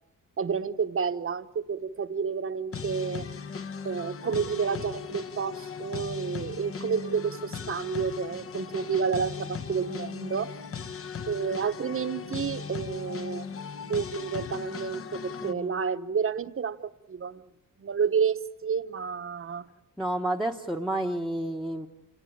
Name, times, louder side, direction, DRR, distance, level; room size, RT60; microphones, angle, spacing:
voice 1, 0.4-3.3 3.8-10.5 11.3-17.4 17.8-19.7, right 6 dB, 40° right, 10 dB, 1.0 m, -30 dB
sound 1, 2.7-15.5, left 6 dB, 40° left, 0.9 m, -38 dB
voice 2, 15.4-15.8 20.0-21.9, right 1 dB, ahead, 0 dB, 1.0 m, -30 dB
28.5 x 18.0 x 8.7 m, 0.83 s
wide cardioid pair, 130°, 33 cm